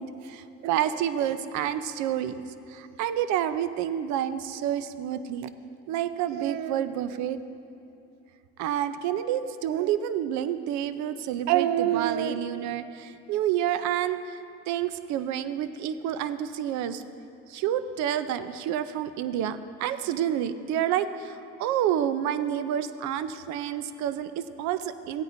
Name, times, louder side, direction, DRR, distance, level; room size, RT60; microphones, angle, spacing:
voice 1, 0.0-2.4 2.7-5.5 5.9-7.4 8.6-14.4 14.7-17.0 17.5-25.2, right 10 dB, 70° right, 12 dB, 0.6 m, -28 dB
15.5 x 9.2 x 2.7 m, 2.6 s
cardioid pair, 110°, 29 cm